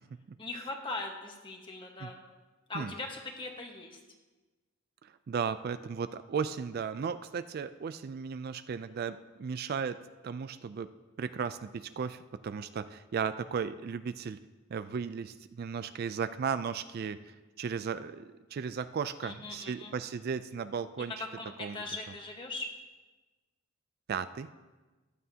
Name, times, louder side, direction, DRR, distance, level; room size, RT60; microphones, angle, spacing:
voice 1, 0.4-2.2 2.7-4.0 19.2-19.9 21.4-22.7, left 2 dB, 25° left, 2 dB, 1.3 m, -40 dB
voice 2, 5.0-10.0 10.2-10.9 11.2-14.4 14.7-21.2 21.6-21.8 24.1-24.5, right 6 dB, 50° right, 12 dB, 0.3 m, -35 dB
15.0 x 11.0 x 2.8 m, 1.2 s
head